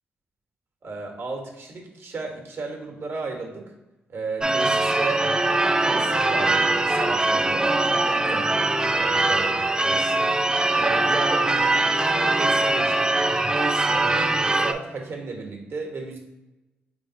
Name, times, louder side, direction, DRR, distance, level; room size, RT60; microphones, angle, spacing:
voice 1, 0.8-3.7 4.1-5.3 5.8-8.5 9.0-10.3 10.7-13.1 13.5-16.2, right 3 dB, 60° right, 1 dB, 1.2 m, -34 dB
Church bell / Car / Alarm, 4.4-14.7, right 2 dB, 15° right, 0.4 m, -22 dB
4.1 x 3.4 x 2.6 m, 1.0 s
supercardioid pair, 50°, 5 cm